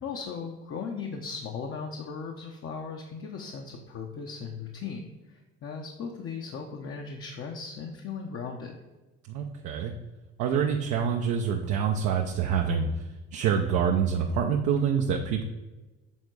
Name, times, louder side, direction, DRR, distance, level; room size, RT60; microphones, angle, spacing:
voice 1, 0.0-8.7, left 5 dB, 45° left, 2 dB, 0.9 m, -37 dB
voice 2, 9.3-9.9 10.4-15.4, right 7 dB, 70° right, 2 dB, 0.7 m, -26 dB
7.3 x 3.6 x 4.7 m, 1.2 s
supercardioid pair, 75°, 30 cm